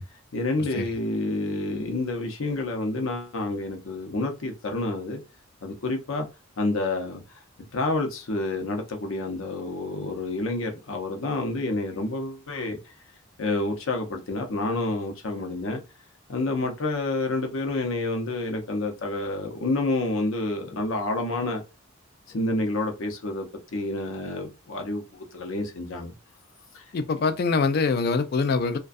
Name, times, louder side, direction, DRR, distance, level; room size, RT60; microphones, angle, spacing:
voice 1, 0.3-5.2 5.6-6.3 6.6-7.2 7.7-12.8 13.4-15.8 16.3-21.6 22.3-23.5 23.7-26.1 26.7-26.8, left 2 dB, 80° left, 0.7 m, -28 dB
voice 2, 26.9-28.8, left 4 dB, 50° left, 0.3 m, -24 dB
2.3 x 2.2 x 2.5 m
head